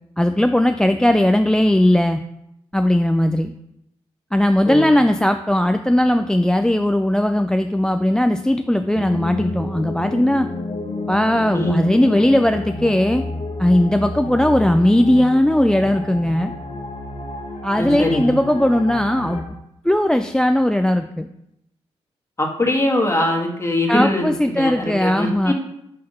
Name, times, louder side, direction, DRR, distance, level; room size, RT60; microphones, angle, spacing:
voice 1, 0.2-2.2 2.7-3.5 4.3-10.5 11.1-13.2 13.6-16.5 17.6-19.5 19.8-21.3 23.9-25.5, left 1 dB, 5° left, 8 dB, 0.4 m, -18 dB
sound 1, 8.9-19.4, left 2 dB, 60° left, 1.4 m, -30 dB
voice 2, 17.8-18.3 22.4-25.5, left 1 dB, 25° left, 1 dB, 1.6 m, -22 dB
5.7 x 3.4 x 5.3 m, 0.80 s
supercardioid pair, 55°, 12 cm